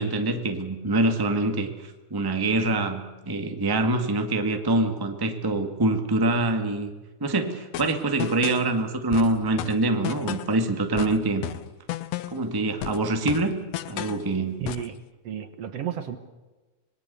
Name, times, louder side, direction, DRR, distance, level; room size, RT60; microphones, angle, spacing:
voice 1, 0.0-6.9 7.2-11.4 12.3-13.6 13.9-14.6, right 2 dB, 10° right, 5 dB, 1.3 m, -25 dB
sound 1, 7.7-8.7 9.1-10.6 11.0-12.5 12.8-14.3 14.7-15.0, left 12 dB, 70° left, 1.8 m, -33 dB
voice 2, 14.6-15.0 15.2-16.2, right 9 dB, 60° right, 10 dB, 2.2 m, -32 dB
26.5 x 21.0 x 6.9 m, 1.2 s
omnidirectional pair, 3.4 m